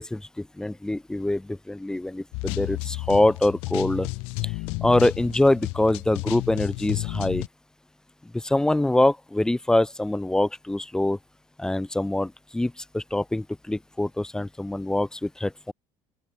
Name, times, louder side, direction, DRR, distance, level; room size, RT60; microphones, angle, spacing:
voice 1, 0.0-4.1 4.4-4.5 4.8-7.4 8.3-11.2 11.6-15.7, left 1 dB, 5° left, 3.0 m, -24 dB
sound 1, 2.3-7.5, left 30 dB, 80° left, 3.8 m, -32 dB
open air
cardioid pair, 115°, 9 cm